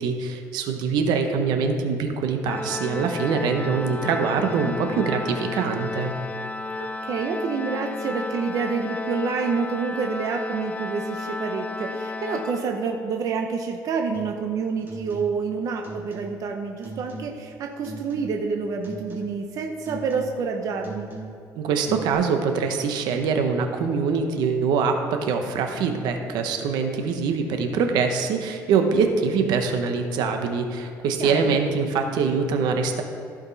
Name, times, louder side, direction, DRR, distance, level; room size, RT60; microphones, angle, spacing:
voice 1, 0.0-6.1 21.6-33.0, right 5 dB, 80° right, 5 dB, 1.0 m, -24 dB
Organ, 2.4-13.2, left 3 dB, 20° left, 0.3 m, -33 dB
voice 2, 6.8-21.1 31.2-31.6, right 5 dB, 55° right, 3 dB, 0.8 m, -28 dB
sound 1, 14.1-14.5 14.8-15.5 15.8-16.5 16.8-17.5 17.8-18.5 18.8-19.5 19.9-20.5 20.8-21.5 21.9-22.1, right 3 dB, 30° right, 2.3 m, -39 dB
15.0 x 5.2 x 4.1 m, 2.6 s
cardioid pair, 140°, 7 cm